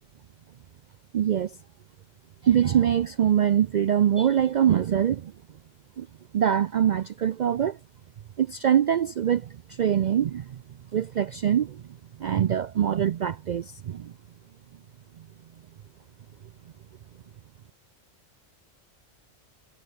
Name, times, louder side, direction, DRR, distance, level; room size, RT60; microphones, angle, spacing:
voice 1, 1.1-1.6 2.4-5.3 6.0-6.1 6.3-7.8 8.4-10.6 10.9-11.8 12.2-14.1, right 9 dB, 80° right, 0.4 m, -23 dB
omnidirectional pair, 1.3 m